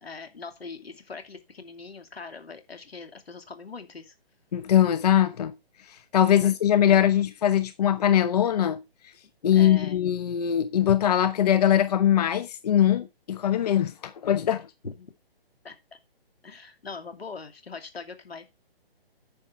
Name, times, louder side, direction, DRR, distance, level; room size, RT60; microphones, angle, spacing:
voice 1, 0.0-4.1 6.4-6.5 6.9-7.0 9.5-10.0 14.8-15.1 15.6-16.0 16.4-18.5, left 4 dB, 80° left, 2.5 m, -41 dB
voice 2, 4.5-5.5 5.9-8.8 9.4-14.7, left 10 dB, 40° left, 0.7 m, -22 dB
9.6 x 6.5 x 4.5 m
figure-of-eight pair, 145°, 30 cm